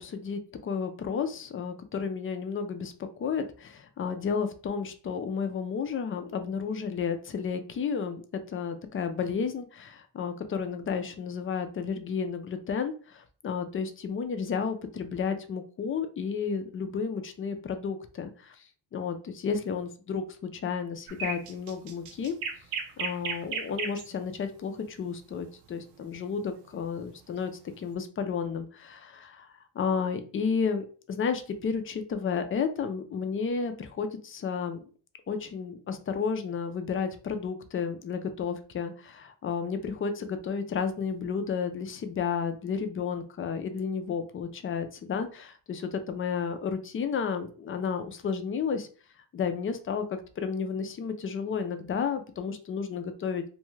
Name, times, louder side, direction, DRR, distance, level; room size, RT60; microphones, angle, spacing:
voice 1, 0.0-2.9 3.2-18.6 18.9-22.4 23.0-27.5 27.8-29.5 29.8-34.8 35.3-48.9 49.3-53.4, left 6 dB, 30° left, 8 dB, 0.3 m, -32 dB
sound 1, 21.1-24.1 26.1-26.4, right 5 dB, 85° right, 0.7 m, -34 dB
2.6 x 2.3 x 3.1 m, 0.39 s
cardioid pair, 110°, 47 cm